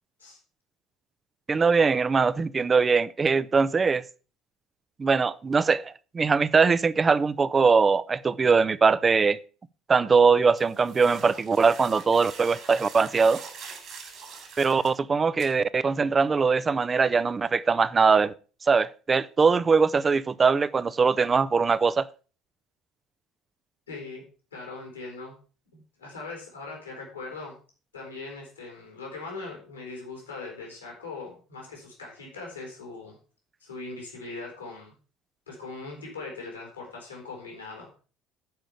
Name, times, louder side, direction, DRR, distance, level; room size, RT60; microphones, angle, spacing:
voice 1, 1.5-4.0 5.0-9.4 9.9-13.4 14.6-18.3 18.6-22.1, right 5 dB, 30° right, 0.6 m, -22 dB
sound 1, 10.6-15.0 15.4-15.5, right 5 dB, 55° right, 3.3 m, -43 dB
voice 2, 23.9-24.2 24.5-25.4 25.7-27.6 27.9-33.2 33.6-34.9 35.5-38.0, left 3 dB, 90° left, 3.7 m, -40 dB
10.5 x 5.1 x 6.9 m
figure-of-eight pair, 60°, 0 cm